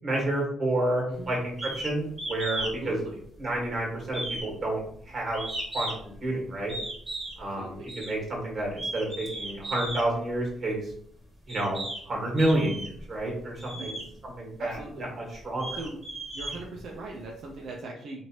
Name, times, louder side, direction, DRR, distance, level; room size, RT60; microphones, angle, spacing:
voice 1, 0.0-3.0 3.4-5.4 5.7-6.7 7.4-10.9 11.5-11.8 12.0-15.8, right 1 dB, 40° right, -1 dB, 1.5 m, -30 dB
sound 1, 1.6-1.9 2.2-2.8 3.1-3.7 4.1-6.1 6.7-7.4 7.9-8.1 8.7-10.1 10.9-11.0 11.5-12.0 12.4-13.0 13.6-14.1 14.7-14.8 15.3-17.1, right 1 dB, 20° right, 1.4 m, -35 dB
voice 2, 2.6-3.2 7.6-7.9 13.8-13.9 14.6-15.1 15.7-16.0 16.3-18.3, right 2 dB, 70° right, -1 dB, 0.5 m, -40 dB
3.0 x 2.6 x 2.9 m, 0.66 s
cardioid pair, 90°, 0 cm